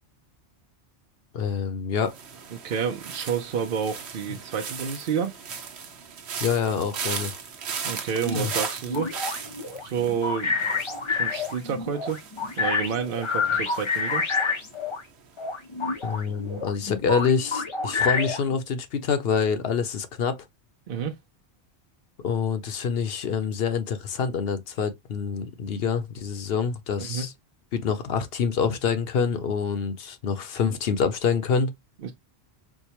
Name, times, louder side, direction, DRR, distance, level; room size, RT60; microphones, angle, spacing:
voice 1, 1.3-2.1 6.4-7.3 8.3-8.5 16.0-20.4 22.2-27.3 27.7-31.7, left 6 dB, 65° left, 0.8 m, -26 dB
sound 1, 2.1-15.1 15.4-15.8, right 6 dB, 75° right, 1.0 m, -37 dB
voice 2, 2.5-5.4 7.8-9.1 9.8-10.6 11.1-12.2 12.6-14.2 20.9-21.1 27.0-27.3 32.0-32.1, right 7 dB, 60° right, 0.8 m, -29 dB
sound 2, 8.2-15.0 15.4-18.6, left 4 dB, 40° left, 0.4 m, -28 dB
4.6 x 2.2 x 2.8 m
omnidirectional pair, 1.2 m